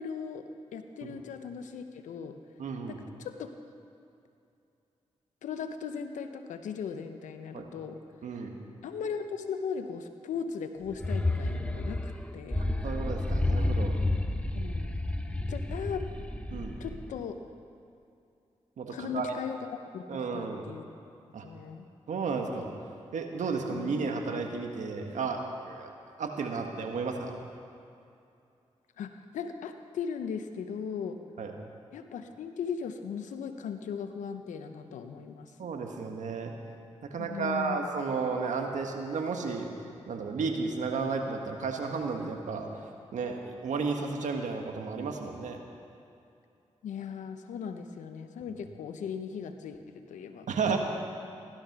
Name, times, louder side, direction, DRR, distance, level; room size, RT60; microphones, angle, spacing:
voice 1, 0.0-2.4 2.9-3.5 5.4-8.0 8.8-12.6 14.5-14.9 15.5-16.1 16.8-17.4 18.9-19.6 19.9-20.8 21.4-21.9 23.7-23.9 29.0-31.2 31.9-35.5 37.2-37.9 46.8-50.8, left 6 dB, 90° left, 8 dB, 0.9 m, -38 dB
voice 2, 2.6-3.0 7.5-7.7 8.2-8.5 12.8-13.9 16.5-16.7 18.8-19.3 20.1-20.6 21.3-21.4 22.1-22.7 23.1-25.4 25.6-25.9 26.2-27.4 31.4-31.5 35.6-36.5 37.0-39.7 40.1-42.8 43.1-45.6 50.5-50.8, right 4 dB, 80° right, 3 dB, 1.7 m, -33 dB
sound 1, 10.9-17.2, left 2 dB, 10° left, 1.2 m, -30 dB
16.0 x 12.5 x 6.1 m, 2.6 s
supercardioid pair, 45°, 12 cm